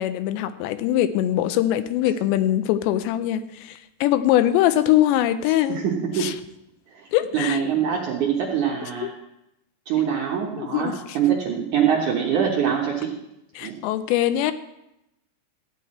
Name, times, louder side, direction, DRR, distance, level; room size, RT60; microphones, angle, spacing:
voice 1, 0.0-5.9 6.2-6.4 7.1-7.6 8.8-9.1 10.6-11.2 13.6-14.5, left 12 dB, 90° left, 12 dB, 2.9 m, -22 dB
voice 2, 5.7-6.3 7.0-7.1 7.3-9.1 9.9-13.1 13.6-13.8, right 8 dB, 65° right, -2 dB, 2.0 m, -24 dB
14.5 x 9.2 x 4.3 m, 0.86 s
omnidirectional pair, 5.0 m